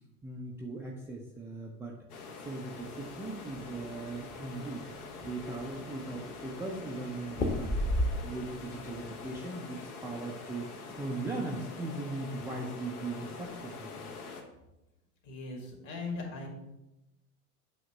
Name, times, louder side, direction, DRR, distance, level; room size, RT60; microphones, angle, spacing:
voice 1, 0.2-14.1, right 2 dB, 5° right, -3 dB, 0.4 m, -39 dB
sound 1, 2.1-14.4, left 4 dB, 70° left, 1.2 m, -45 dB
sound 2, 4.0-4.4 4.8-4.9 5.2-5.9 7.3-8.6 8.9-9.4, left 1 dB, 20° left, 0.9 m, -31 dB
voice 2, 15.2-16.5, left 3 dB, 50° left, 1 dB, 2.2 m, -39 dB
8.1 x 2.8 x 6.1 m, 0.95 s
hypercardioid pair, 95°, 46 cm